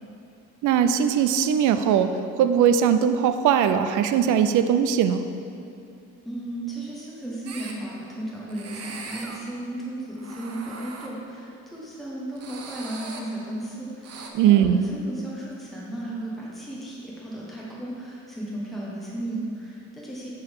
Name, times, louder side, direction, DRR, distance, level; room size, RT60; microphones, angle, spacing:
voice 1, 0.6-2.1 2.4-5.2 14.3-14.8, right 8 dB, 80° right, 9 dB, 0.5 m, -20 dB
voice 2, 6.2-20.3, right 1 dB, ahead, -6 dB, 1.4 m, -35 dB
sound 1, 7.5-7.7 8.5-9.4 10.1-11.1 12.4-13.2 14.0-14.3, right 4 dB, 55° right, 0.9 m, -39 dB
9.9 x 4.0 x 4.7 m, 2.6 s
cardioid pair, 90°, 30 cm